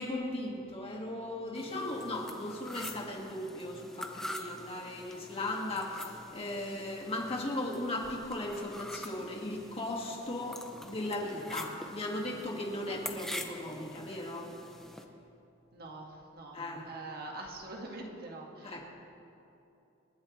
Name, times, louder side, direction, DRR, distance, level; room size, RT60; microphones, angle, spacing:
voice 1, 0.0-14.5 16.5-16.9 18.6-18.8, left 1 dB, 30° left, -1 dB, 1.9 m, -37 dB
sound 1, 1.5-15.0, left 1 dB, ahead, 0.8 m, -45 dB
voice 2, 15.7-16.6 16.9-18.8, right 2 dB, 50° right, 0 dB, 1.8 m, -44 dB
27.0 x 11.0 x 3.2 m, 2.8 s
head